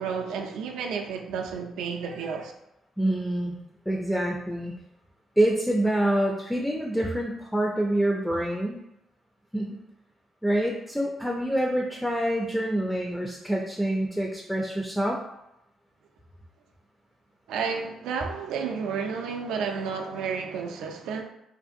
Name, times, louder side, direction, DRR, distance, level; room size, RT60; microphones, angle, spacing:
voice 1, 0.0-2.5 17.5-21.2, right 6 dB, 85° right, 3 dB, 0.3 m, -31 dB
voice 2, 3.0-3.6 3.9-4.7 5.4-8.8 9.5-9.8 10.4-15.2, right 1 dB, 5° left, 0 dB, 0.3 m, -26 dB
2.5 x 2.3 x 2.6 m, 0.86 s
cardioid pair, 90°, 0 cm